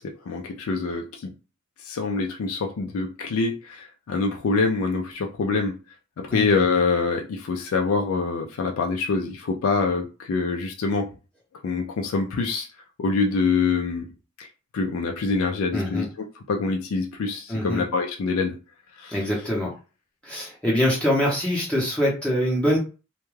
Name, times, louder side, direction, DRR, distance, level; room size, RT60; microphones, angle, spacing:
voice 1, 0.0-1.3 1.8-5.8 6.2-11.1 11.6-12.7 13.0-14.1 14.4-14.5 14.7-16.1 16.3-18.6 18.9-19.3, left 4 dB, 75° left, 2 dB, 0.3 m, -25 dB
voice 2, 15.7-16.1 17.5-17.8 19.1-19.7 20.2-22.8, equal, 5° left, -5 dB, 0.6 m, -24 dB
2.2 x 2.2 x 3.1 m, 0.33 s
head